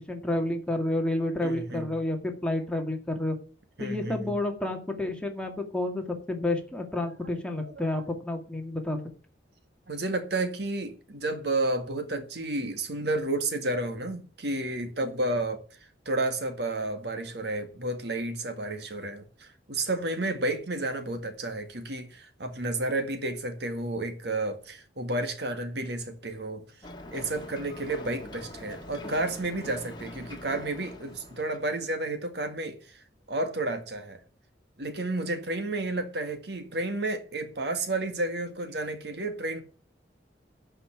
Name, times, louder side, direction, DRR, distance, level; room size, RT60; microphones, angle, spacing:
voice 1, 0.0-3.4 3.8-9.0, left 1 dB, 5° left, 2.1 m, -30 dB
voice 2, 1.4-1.9 3.8-4.3 7.6-8.0 9.9-15.6 16.1-26.6 27.1-34.2 34.8-39.6, right 2 dB, 65° right, 1.9 m, -31 dB
Ocean, 26.8-31.7, left 1 dB, 25° left, 1.9 m, -43 dB
11.5 x 5.7 x 8.2 m
head